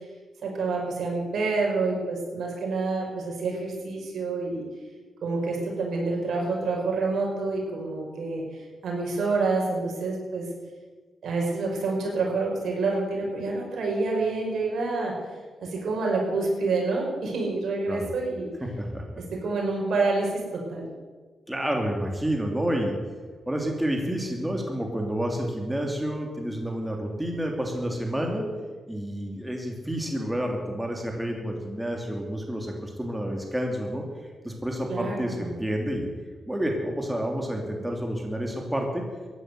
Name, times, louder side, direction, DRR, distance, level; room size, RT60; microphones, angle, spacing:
voice 1, 0.4-4.6 5.2-10.5 11.2-15.1 15.6-18.5 19.2-20.9 34.9-35.5, right 3 dB, 75° right, -1 dB, 5.7 m, -28 dB
voice 2, 18.6-19.0 21.5-22.9 23.5-28.5 28.9-34.0 34.4-36.1 36.5-39.0, equal, 10° right, 1 dB, 2.9 m, -29 dB
16.0 x 11.0 x 8.0 m, 1.4 s
cardioid pair, 90°, 0 cm